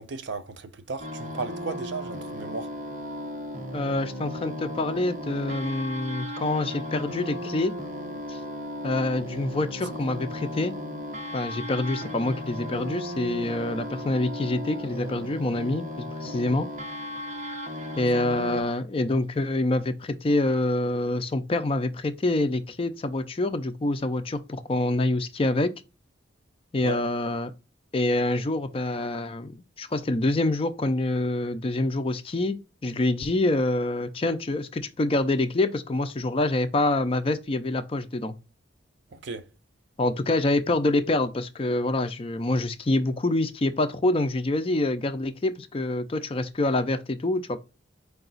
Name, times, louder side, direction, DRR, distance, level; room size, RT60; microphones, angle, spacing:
voice 1, 0.0-2.7 26.8-27.0 39.1-39.4, right 3 dB, 60° right, 0.5 m, -35 dB
sound 1, 1.0-18.6, left 1 dB, 40° right, 0.9 m, -36 dB
voice 2, 3.7-7.7 8.3-8.4 8.8-10.7 11.3-16.7 18.0-25.7 26.7-27.5 27.9-38.4 40.0-47.6, left 2 dB, 30° left, 0.4 m, -26 dB
4.8 x 2.3 x 3.8 m
head